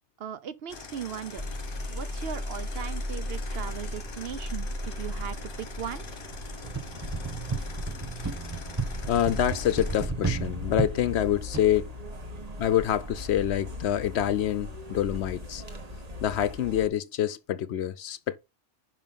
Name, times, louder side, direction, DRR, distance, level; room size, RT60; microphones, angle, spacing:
voice 1, 0.2-1.5 1.9-6.1, right 8 dB, 60° right, 0.8 m, -38 dB
sound 1, 0.7-10.1, left 5 dB, 50° left, 1.1 m, -44 dB
sound 2, 1.3-16.9, left 1 dB, 35° right, 1.3 m, -38 dB
sound 3, 6.6-11.6, right 4 dB, 20° right, 0.6 m, -33 dB
voice 2, 9.1-11.9 12.6-15.6 16.2-18.4, left 11 dB, 70° left, 0.8 m, -26 dB
5.6 x 5.4 x 5.5 m
omnidirectional pair, 1.3 m